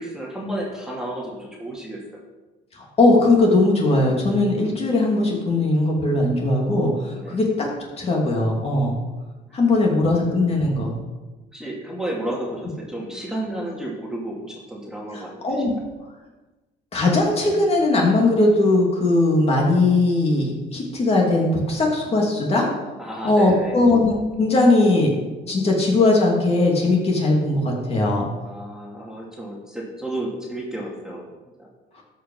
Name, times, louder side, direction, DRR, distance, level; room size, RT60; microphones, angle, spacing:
voice 1, 0.0-2.2 7.1-7.4 9.5-10.2 11.5-15.6 23.0-23.8 28.4-31.3 31.6-31.7, right 1 dB, 5° right, -3 dB, 2.4 m, -32 dB
voice 2, 2.7-7.7 8.0-9.0 9.5-11.0 15.1-15.8 16.9-22.7 23.2-25.1 25.5-28.3, left 2 dB, 35° left, -1 dB, 2.9 m, -19 dB
13.0 x 5.7 x 5.6 m, 1.2 s
cardioid pair, 110°, 17 cm